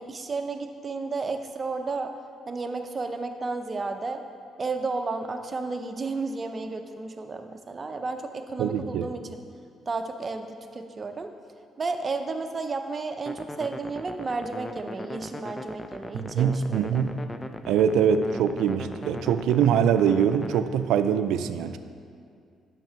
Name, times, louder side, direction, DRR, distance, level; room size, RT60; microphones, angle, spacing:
voice 1, 0.0-2.1 2.5-4.2 4.6-9.2 9.9-11.3 11.8-16.9, right 3 dB, 35° right, 6 dB, 0.6 m, -32 dB
voice 2, 8.6-9.1 16.1-17.2 17.7-21.8, right 8 dB, 90° right, 10 dB, 0.4 m, -23 dB
sound 1, 13.3-20.6, left 1 dB, 15° left, 0.5 m, -39 dB
7.5 x 5.9 x 5.6 m, 2.3 s
cardioid pair, 90°, 0 cm